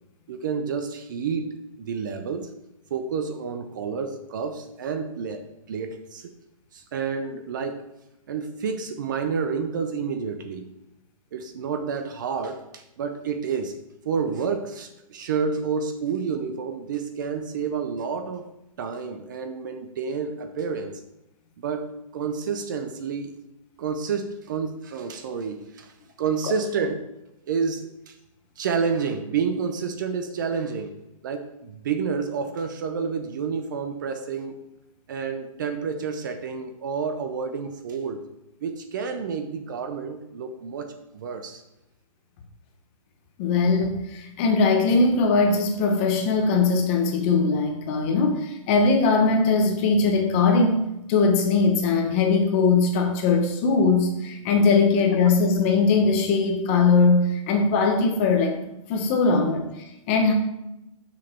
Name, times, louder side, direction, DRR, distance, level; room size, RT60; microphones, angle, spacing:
voice 1, 0.3-2.5 2.9-6.3 6.7-7.8 8.3-10.7 11.3-13.8 14.0-18.5 18.8-21.0 21.6-23.3 23.8-27.0 27.5-28.2 28.6-30.9 31.2-34.6 35.1-38.2 38.6-41.6, right 5 dB, 35° right, 8 dB, 0.6 m, -29 dB
voice 2, 43.4-58.6 58.9-59.7 60.1-60.3, left 4 dB, 25° left, 4 dB, 0.9 m, -20 dB
6.4 x 6.3 x 4.4 m, 0.89 s
hypercardioid pair, 165°, 18 cm